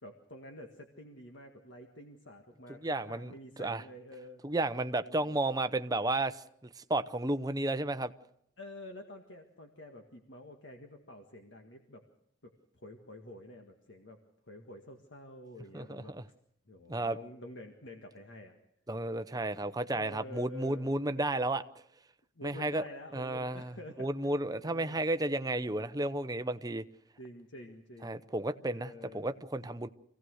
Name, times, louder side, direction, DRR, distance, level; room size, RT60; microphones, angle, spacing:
voice 1, 0.0-4.4 5.0-5.4 8.6-12.0 12.4-14.2 14.5-16.1 16.7-18.5 19.6-21.0 22.4-24.2 24.6-25.1 27.2-28.2 28.6-29.3, left 1 dB, 60° left, 1.8 m, -49 dB
voice 2, 2.8-3.3 3.6-3.8 4.4-6.4 6.8-8.1 15.7-16.2 16.9-17.2 18.9-21.6 22.4-22.8 23.1-23.7 24.0-26.8 28.0-29.9, right 2 dB, 20° right, 0.7 m, -32 dB
26.0 x 17.0 x 6.4 m
head